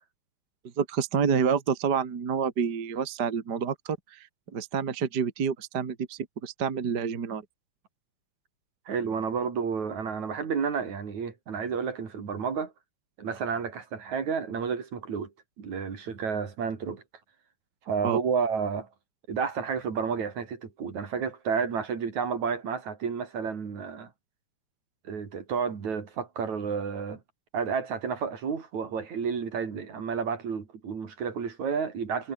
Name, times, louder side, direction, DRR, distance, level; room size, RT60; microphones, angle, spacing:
voice 1, 0.8-4.3 4.5-7.4 18.0-18.2, right 6 dB, 35° right, 2.2 m, -28 dB
voice 2, 8.9-12.7 13.2-15.3 15.6-17.0 17.9-18.9 19.3-24.1 25.0-27.2 27.5-32.3, right 6 dB, 65° right, 4.6 m, -31 dB
omnidirectional pair, 3.5 m